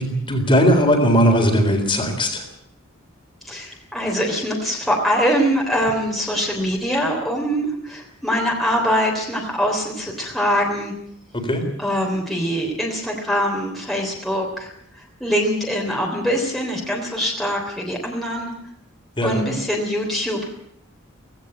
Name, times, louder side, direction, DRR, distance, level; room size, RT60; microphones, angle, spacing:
voice 1, 0.0-2.5 11.3-11.7 19.2-19.4, equal, 25° left, 4 dB, 3.8 m, -18 dB
voice 2, 3.5-10.9 11.8-14.7 15.2-18.5 19.2-20.4, equal, ahead, -1 dB, 3.5 m, -23 dB
18.0 x 16.5 x 8.9 m, 0.71 s
head